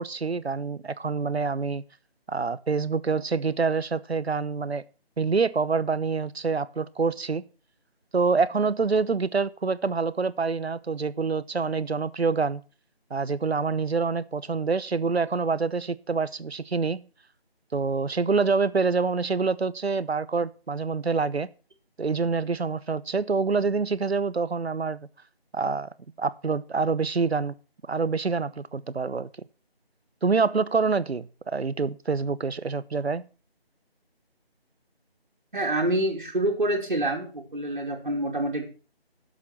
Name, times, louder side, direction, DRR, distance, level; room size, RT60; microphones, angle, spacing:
voice 1, 0.0-1.8 2.3-4.8 5.2-7.4 8.1-12.6 13.1-17.1 17.7-21.5 22.0-25.1 25.5-25.9 26.2-27.5 27.9-29.3 30.2-33.2, right 4 dB, 90° right, 0.9 m, -26 dB
voice 2, 35.5-38.6, right 1 dB, 50° right, 2.8 m, -27 dB
12.0 x 7.5 x 5.9 m
figure-of-eight pair, 180°, 31 cm